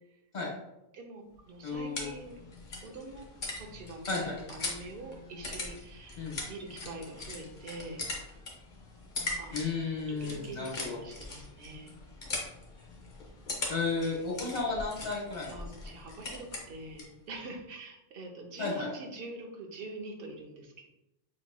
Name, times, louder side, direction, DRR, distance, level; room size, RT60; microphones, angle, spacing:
voice 1, 0.9-2.4 2.8-3.2 3.6-8.1 9.4-9.8 10.2-11.9 15.5-20.9, right 2 dB, 60° right, 2 dB, 0.9 m, -44 dB
sound 1, 1.3-17.2, left 2 dB, 50° left, 1.0 m, -41 dB
voice 2, 1.6-2.1 4.1-4.3 6.2-6.4 9.5-11.0 13.7-15.6 18.6-18.9, left 4 dB, 75° left, -4 dB, 1.8 m, -33 dB
6.0 x 3.0 x 2.2 m, 0.91 s
omnidirectional pair, 1.1 m